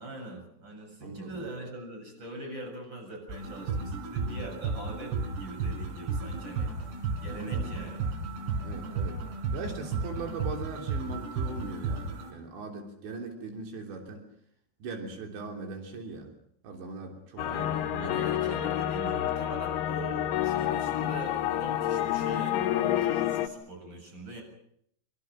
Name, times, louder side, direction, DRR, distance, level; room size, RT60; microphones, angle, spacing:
voice 1, 0.0-6.7 7.2-8.0 17.4-24.4, right 1 dB, 25° right, 3 dB, 8.0 m, -42 dB
voice 2, 1.0-1.4 7.3-7.7 8.6-9.2 9.5-14.2 14.8-16.3 16.6-18.2, right 4 dB, 85° right, 4 dB, 5.6 m, -40 dB
sound 1, 3.3-12.3, right 4 dB, 70° right, 6.4 m, -33 dB
sound 2, 17.4-23.5, left 12 dB, 70° left, 3.2 m, -29 dB
25.5 x 25.5 x 6.4 m, 0.70 s
omnidirectional pair, 5.0 m